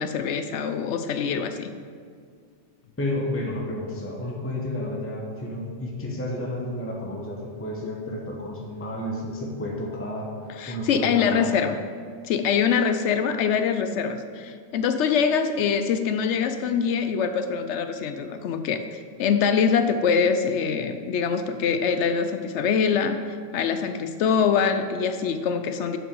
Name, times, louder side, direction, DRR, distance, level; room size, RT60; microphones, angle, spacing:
voice 1, 0.0-1.7 10.5-11.8 12.2-23.2 23.5-26.0, left 6 dB, 70° left, 8 dB, 0.8 m, -24 dB
voice 2, 3.0-10.3 10.7-11.5, left 1 dB, 10° left, -2 dB, 0.9 m, -31 dB
7.4 x 5.6 x 5.4 m, 2.1 s
omnidirectional pair, 1.3 m